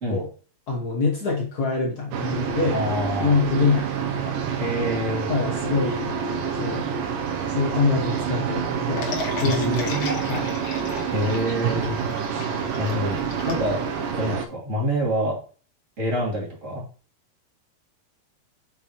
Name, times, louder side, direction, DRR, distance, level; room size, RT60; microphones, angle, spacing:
voice 1, 0.7-2.8 3.2-4.3 4.8-6.2 6.5-6.8 7.5-10.6, left 4 dB, 70° left, -2 dB, 0.9 m, -25 dB
sound 1, 2.1-14.4, right 7 dB, 75° right, 2.4 m, -27 dB
voice 2, 2.7-3.4 4.6-5.3 9.6-10.2 11.1-12.0 12.8-13.2 13.4-13.8 14.1-15.4 16.0-16.8, equal, 25° right, -4 dB, 2.5 m, -26 dB
sound 2, 9.0-14.3, left 3 dB, 55° left, 2.3 m, -34 dB
6.7 x 5.7 x 3.1 m, 0.38 s
omnidirectional pair, 4.1 m